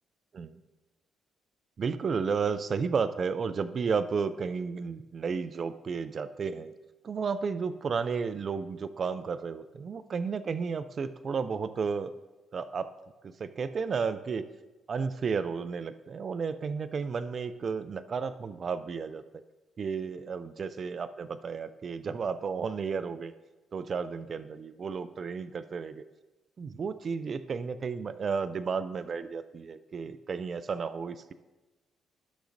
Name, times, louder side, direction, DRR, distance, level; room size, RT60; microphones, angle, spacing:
voice 1, 1.8-6.7 7.0-12.1 12.5-12.9 13.2-14.5 14.9-19.2 19.8-23.3 23.7-26.0 26.6-31.3, right 5 dB, 45° right, 12 dB, 0.3 m, -32 dB
13.0 x 6.2 x 2.6 m, 1.1 s
cardioid pair, 90°, 0 cm